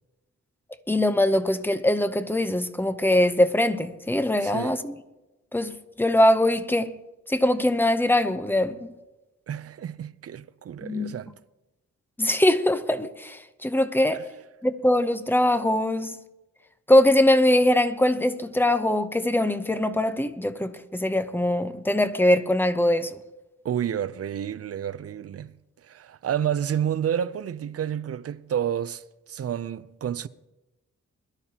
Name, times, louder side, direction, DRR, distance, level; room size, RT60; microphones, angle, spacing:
voice 1, 0.9-5.0 5.5-6.9 7.3-8.9 10.8-11.1 12.2-14.2 14.6-16.2 16.9-23.2, left 1 dB, 5° left, 0.7 m, -22 dB
voice 2, 4.4-4.8 9.5-11.3 14.1-14.2 23.6-25.5 25.8-29.0 29.3-30.3, right 9 dB, 55° right, 0.5 m, -30 dB
22.0 x 12.5 x 2.9 m
wide cardioid pair, 115°, 30 cm